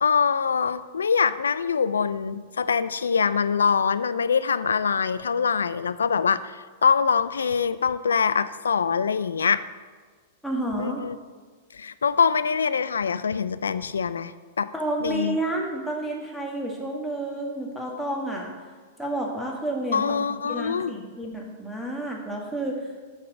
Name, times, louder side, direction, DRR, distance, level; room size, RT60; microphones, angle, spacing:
voice 1, 0.0-9.6 10.8-11.2 11.7-14.7 15.0-15.4 19.9-20.9, left 6 dB, 85° left, 15 dB, 0.3 m, -24 dB
voice 2, 10.4-11.0 14.7-18.5 19.0-22.9, right 1 dB, ahead, -2 dB, 1.8 m, -30 dB
6.6 x 5.6 x 6.2 m, 1.5 s
hypercardioid pair, 105°, 0 cm